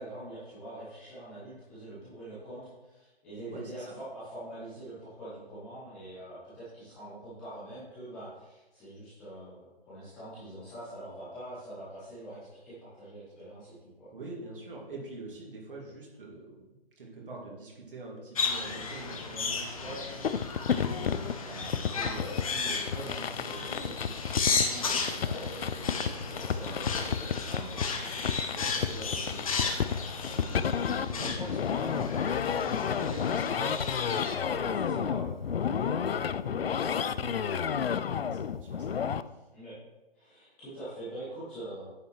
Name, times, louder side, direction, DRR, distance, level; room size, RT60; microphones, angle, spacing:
voice 1, 0.0-14.1 19.8-20.0 21.7-22.2 28.1-28.5 34.5-35.1 39.5-39.7 40.1-41.9, right 1 dB, 5° left, -12 dB, 0.6 m, -44 dB
voice 2, 3.5-3.9 14.1-16.7 17.0-39.5, right 2 dB, 55° right, -3 dB, 2.3 m, -45 dB
sound 1, 18.4-34.4, left 4 dB, 35° left, 1.0 m, -34 dB
sound 2, 20.2-39.2, left 7 dB, 65° left, 0.5 m, -31 dB
9.2 x 6.9 x 3.1 m, 1.1 s
figure-of-eight pair, 155°, 31 cm